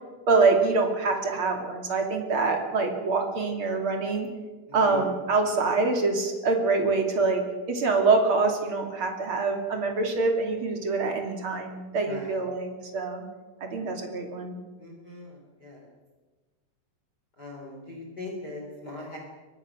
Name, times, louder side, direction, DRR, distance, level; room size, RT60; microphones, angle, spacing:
voice 1, 0.3-4.3 4.7-7.4 7.7-13.2 13.6-14.6, right 3 dB, 35° right, 3 dB, 2.5 m, -25 dB
voice 2, 4.7-5.1 12.0-12.4 14.8-15.9 17.4-19.2, left 2 dB, 25° left, 0 dB, 3.5 m, -41 dB
23.5 x 20.0 x 6.2 m, 1.3 s
omnidirectional pair, 5.6 m